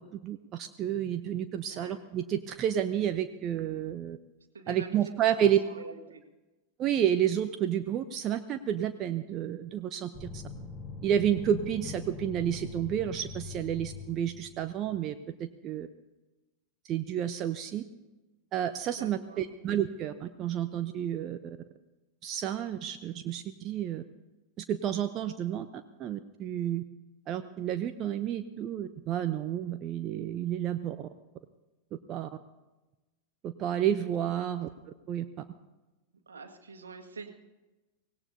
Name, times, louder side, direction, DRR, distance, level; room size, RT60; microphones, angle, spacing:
voice 1, 0.2-4.2 4.7-5.6 6.8-10.4 11.0-15.1 15.4-15.9 16.9-17.8 18.5-21.6 22.2-24.0 24.7-25.7 26.0-26.8 27.3-31.1 32.1-32.3 33.4-34.7 35.1-35.2, right 10 dB, 35° right, 9 dB, 0.7 m, -30 dB
voice 2, 4.5-5.0 5.4-6.2 19.0-19.4 34.2-34.3 36.3-37.3, right 4 dB, 70° right, 4 dB, 1.7 m, -45 dB
sound 1, 10.1-14.7, left 4 dB, 10° left, 5.5 m, -42 dB
24.0 x 18.0 x 2.8 m, 1.1 s
figure-of-eight pair, 90°, 0 cm